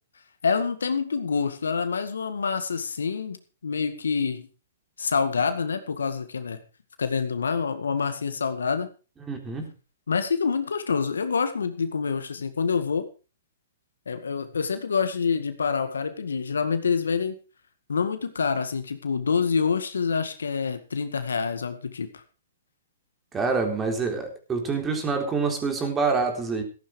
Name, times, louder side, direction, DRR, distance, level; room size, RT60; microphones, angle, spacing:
voice 1, 0.4-3.4 3.6-4.5 5.0-6.6 7.0-8.9 10.1-13.1 14.1-17.4 17.9-22.2, left 5 dB, 85° left, 9 dB, 2.0 m, -26 dB
voice 2, 9.3-9.7 23.3-26.6, right 4 dB, 15° right, 4 dB, 3.9 m, -26 dB
14.5 x 11.5 x 4.8 m, 0.34 s
hypercardioid pair, 135°, 0 cm